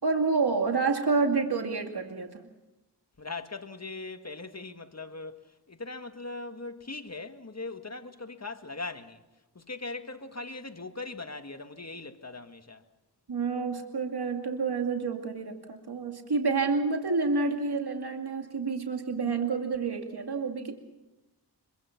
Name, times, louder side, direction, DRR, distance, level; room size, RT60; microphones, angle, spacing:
voice 1, 0.0-2.4 13.3-20.8, right 4 dB, 65° right, 2.4 m, -28 dB
voice 2, 3.2-9.2 9.6-12.8, left 3 dB, 40° left, 1.8 m, -40 dB
25.5 x 23.5 x 5.9 m
cardioid pair, 40°, 42 cm